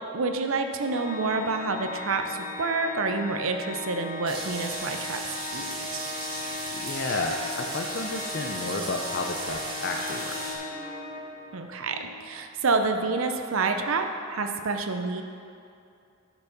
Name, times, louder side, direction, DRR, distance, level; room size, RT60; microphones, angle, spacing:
voice 1, 0.1-5.2 5.5-6.2 11.5-15.2, right 3 dB, 70° right, 6 dB, 0.6 m, -28 dB
Organ, 0.8-11.6, left 3 dB, ahead, 2.7 m, -38 dB
sound 1, 4.3-10.5, right 2 dB, 25° right, 2.1 m, -36 dB
sound 2, 5.5-6.8 7.1-12.4, left 1 dB, 70° left, 1.8 m, -48 dB
voice 2, 6.7-10.4, left 3 dB, 50° left, 1 dB, 0.6 m, -31 dB
10.5 x 5.9 x 5.8 m, 2.5 s
head